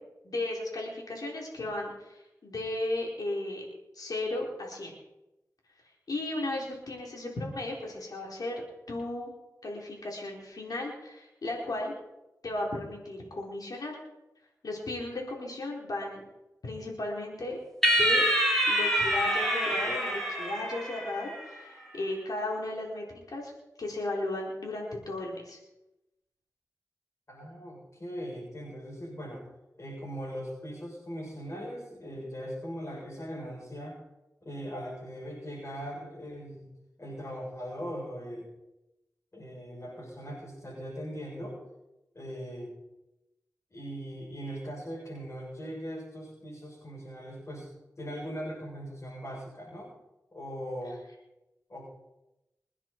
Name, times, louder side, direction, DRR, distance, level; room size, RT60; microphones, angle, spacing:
voice 1, 0.2-3.7 3.9-4.9 6.1-9.3 9.6-11.9 12.4-14.0 14.6-16.2 16.6-17.6 18.0-18.2 18.7-23.5 23.8-25.6, left 2 dB, 80° left, -1 dB, 4.0 m, -35 dB
sound 1, 17.8-21.4, equal, 5° left, 5.0 m, -26 dB
voice 2, 27.3-29.5 29.8-34.0 34.4-36.7 37.0-38.5 39.3-41.6 42.1-42.7 43.7-47.7 48.0-49.9 50.3-51.0 51.7-51.9, equal, 50° left, -6 dB, 7.6 m, -40 dB
24.0 x 10.0 x 4.5 m, 0.95 s
cardioid pair, 45°, 6 cm